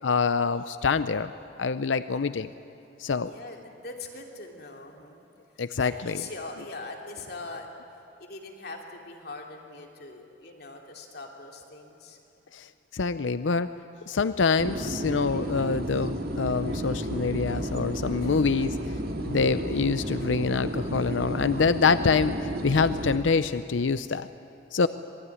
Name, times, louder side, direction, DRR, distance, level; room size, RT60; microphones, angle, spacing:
voice 1, 0.0-1.3 1.6-2.5 3.0-3.3 5.6-6.2 12.5-13.7 14.1-18.8 19.2-24.3 24.7-24.9, left 4 dB, 85° left, 13 dB, 0.6 m, -25 dB
voice 2, 3.3-5.3 5.8-7.7 8.2-12.2 18.2-18.7 19.2-19.3, left 3 dB, 55° left, 1 dB, 3.1 m, -42 dB
sound 1, 14.6-23.2, right 1 dB, 55° right, 2.5 m, -32 dB
26.0 x 21.0 x 9.9 m, 2.8 s
head